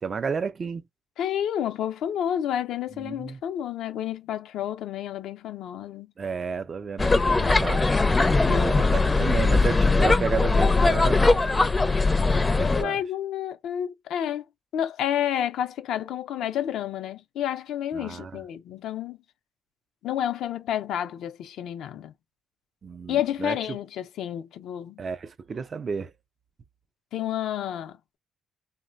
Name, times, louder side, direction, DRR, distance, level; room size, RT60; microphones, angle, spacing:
voice 1, 0.0-0.9 2.9-3.4 6.2-7.9 8.5-11.7 12.6-13.0 17.9-18.4 22.8-23.6 25.0-26.1, right 5 dB, 40° right, 0.4 m, -32 dB
voice 2, 1.2-6.1 8.5-8.9 12.6-14.5 14.7-19.2 20.0-22.1 23.1-25.0 27.1-28.2, left 10 dB, 80° left, 0.5 m, -30 dB
sound 1, 7.0-12.8, left 3 dB, 20° left, 0.5 m, -20 dB
3.1 x 2.1 x 2.5 m
cardioid pair, 90°, 0 cm